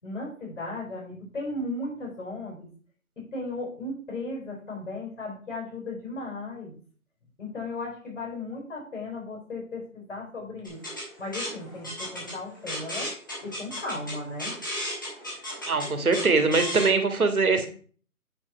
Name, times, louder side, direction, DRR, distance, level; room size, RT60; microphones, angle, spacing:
voice 1, 0.0-2.7 3.2-6.7 7.4-10.8 11.2-13.1 13.4-14.5, left 2 dB, 55° left, -2 dB, 4.4 m, -36 dB
sound 1, 10.7-16.9, equal, 15° left, 1.4 m, -35 dB
voice 2, 15.7-17.7, right 4 dB, 75° right, 7 dB, 1.9 m, -22 dB
8.8 x 3.9 x 5.6 m, 0.43 s
hypercardioid pair, 180°, 44 cm